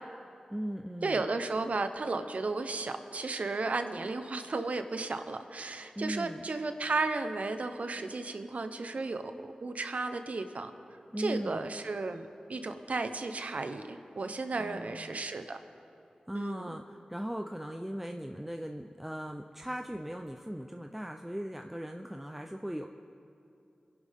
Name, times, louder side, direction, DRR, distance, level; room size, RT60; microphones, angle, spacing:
voice 1, 0.5-1.3 6.0-6.5 11.1-11.7 14.6-15.2 16.3-22.9, equal, 5° right, 4 dB, 0.7 m, -38 dB
voice 2, 1.0-10.7 11.2-15.6 16.3-16.7, right 3 dB, 65° right, 8 dB, 1.1 m, -34 dB
26.5 x 11.0 x 3.7 m, 2.7 s
cardioid pair, 45°, 3 cm